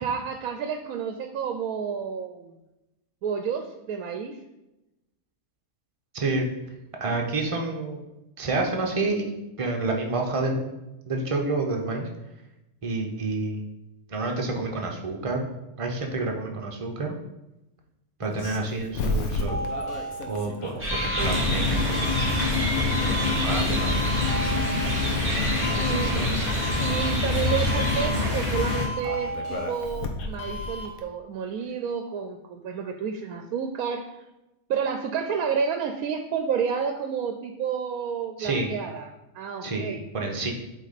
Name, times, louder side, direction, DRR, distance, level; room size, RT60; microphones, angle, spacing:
voice 1, 0.0-2.6 3.2-4.4 25.8-26.3 26.8-34.2 34.7-40.0, right 7 dB, 80° right, 5 dB, 1.1 m, -30 dB
voice 2, 6.1-6.5 7.0-8.0 8.4-9.3 9.6-10.8 11.1-12.1 12.8-13.6 14.1-15.5 15.8-17.1 18.2-19.6 20.3-22.2 23.1-24.1 25.5-26.4 38.4-38.7 39.6-39.9 40.1-40.5, right 3 dB, 25° right, 1 dB, 0.8 m, -29 dB
Doorbell, 18.2-31.0, left 2 dB, 75° left, 1.2 m, -33 dB
sound 1, 20.8-28.1, right 1 dB, 10° right, 1.0 m, -30 dB
sound 2, 21.2-28.9, left 3 dB, 30° left, 2.0 m, -26 dB
8.3 x 3.7 x 4.1 m, 0.95 s
omnidirectional pair, 1.6 m